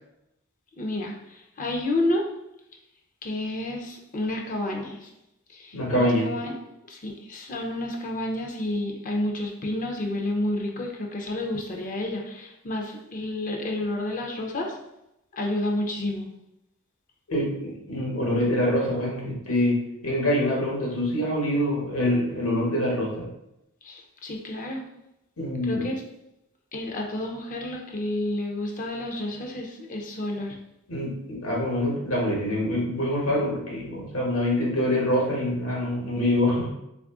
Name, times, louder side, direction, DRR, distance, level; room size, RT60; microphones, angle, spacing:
voice 1, 0.8-2.2 3.2-5.1 5.5-6.6 6.9-14.8 15.3-16.3 23.8-24.8 25.6-25.9 26.7-30.6, left 1 dB, 40° left, 1 dB, 0.5 m, -30 dB
voice 2, 5.7-6.3 17.3-19.8 20.0-23.3 25.4-25.8 30.9-36.7, left 1 dB, 75° left, -4 dB, 1.1 m, -25 dB
3.2 x 2.4 x 3.5 m, 0.86 s
head